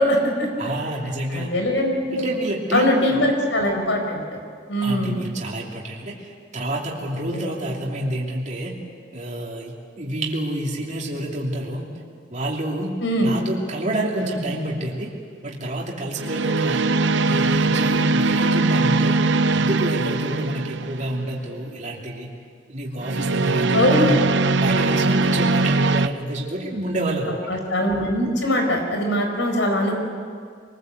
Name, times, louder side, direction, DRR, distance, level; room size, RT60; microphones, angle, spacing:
voice 1, 0.0-0.7 1.3-2.2 2.7-4.4 4.7-5.2 7.3-7.5 13.0-13.3 23.7-24.1 27.5-30.0, equal, 85° left, 3 dB, 4.8 m, -22 dB
voice 2, 0.6-1.5 2.1-3.2 4.8-8.8 9.1-11.8 12.3-15.1 15.4-16.9 17.2-22.3 22.7-24.2 24.5-27.4, right 1 dB, 40° right, -3 dB, 2.9 m, -28 dB
sound 1, 14.2-14.5 16.2-21.2 23.0-26.1, right 3 dB, 70° right, 0.7 m, -21 dB
25.5 x 20.5 x 8.0 m, 2.1 s
head